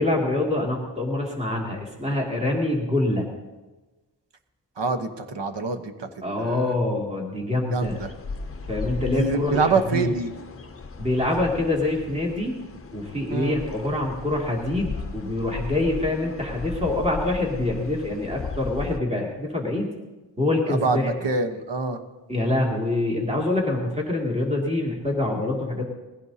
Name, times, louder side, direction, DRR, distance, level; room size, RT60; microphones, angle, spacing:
voice 1, 0.0-3.3 6.2-8.0 8.7-10.1 11.0-12.5 12.9-19.9 20.4-21.1 22.3-25.8, left 2 dB, 15° right, -2 dB, 2.4 m, -25 dB
voice 2, 4.8-6.6 7.7-8.1 9.1-10.3 13.3-13.6 20.7-22.0, right 4 dB, 65° right, 6 dB, 1.2 m, -26 dB
sound 1, 7.8-19.0, left 4 dB, 30° left, 0.7 m, -36 dB
20.5 x 16.0 x 2.8 m, 1.2 s
wide cardioid pair, 130°, 46 cm